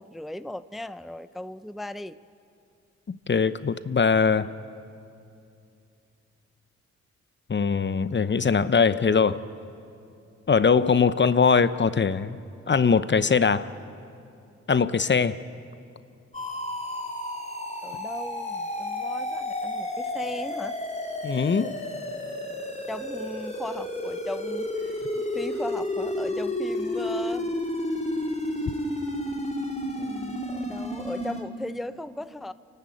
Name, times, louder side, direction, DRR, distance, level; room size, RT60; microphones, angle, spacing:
voice 1, 0.0-2.2 17.8-20.8 22.9-25.0 25.3-27.5 30.0-32.5, left 1 dB, ahead, 13 dB, 0.6 m, -37 dB
voice 2, 3.1-4.5 7.5-9.4 10.5-12.4 12.7-13.7 14.7-15.4 21.2-21.7, left 5 dB, 40° left, 14 dB, 0.8 m, -21 dB
sound 1, 16.3-31.4, left 1 dB, 25° left, 4.0 m, -31 dB
29.0 x 12.5 x 8.6 m, 2.6 s
supercardioid pair, 50°, 30 cm